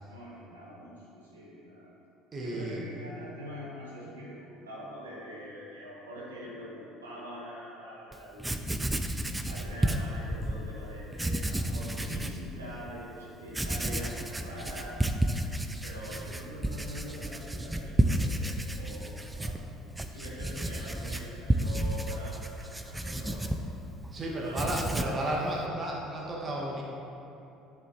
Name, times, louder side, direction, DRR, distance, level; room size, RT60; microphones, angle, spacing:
voice 1, 0.1-1.9 2.4-8.9 9.4-15.4 15.8-19.6 20.1-23.7 24.2-24.7, equal, 85° right, -7 dB, 2.0 m, -44 dB
voice 2, 2.3-2.8 20.3-20.4 24.1-26.8, right 1 dB, 35° right, -2 dB, 1.3 m, -33 dB
Writing, 8.1-8.2 8.4-10.6 11.1-12.4 12.9-13.0 13.5-24.1 24.4-25.2, right 1 dB, 10° right, 0.5 m, -31 dB
11.0 x 6.9 x 3.1 m, 2.8 s
figure-of-eight pair, 60°, 0 cm